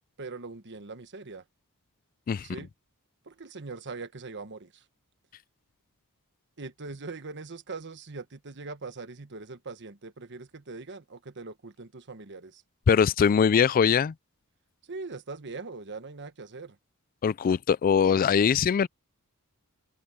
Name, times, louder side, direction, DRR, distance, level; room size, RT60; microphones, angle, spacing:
voice 1, 0.2-1.4 2.4-2.7 3.2-4.8 6.6-12.6 14.9-16.8, right 3 dB, 55° right, 1.3 m, -41 dB
voice 2, 12.9-14.1 17.2-18.9, left 7 dB, 40° left, 0.3 m, -22 dB
open air
head